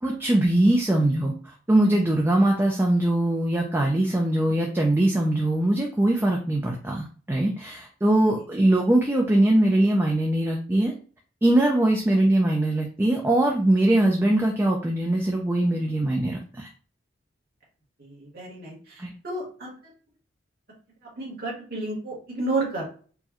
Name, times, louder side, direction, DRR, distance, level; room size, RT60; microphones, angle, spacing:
voice 1, 0.0-10.9 11.4-16.7 19.0-19.1, right 1 dB, 10° right, 0 dB, 0.4 m, -22 dB
voice 2, 18.0-19.7 21.2-22.9, right 2 dB, 50° right, -3 dB, 1.4 m, -31 dB
4.5 x 2.2 x 2.9 m, 0.40 s
head